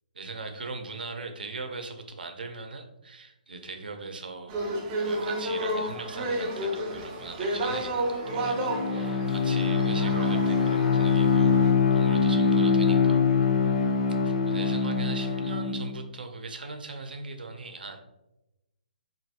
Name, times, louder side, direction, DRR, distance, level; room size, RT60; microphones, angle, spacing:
voice 1, 0.1-13.2 14.2-18.0, right 3 dB, 90° right, 5 dB, 0.6 m, -40 dB
sound 1, 4.5-11.7, right 1 dB, 20° right, 0.4 m, -32 dB
Bowed string instrument, 8.2-16.0, left 5 dB, 60° left, 0.4 m, -23 dB
3.3 x 2.6 x 2.7 m, 0.93 s
hypercardioid pair, 165°, 5 cm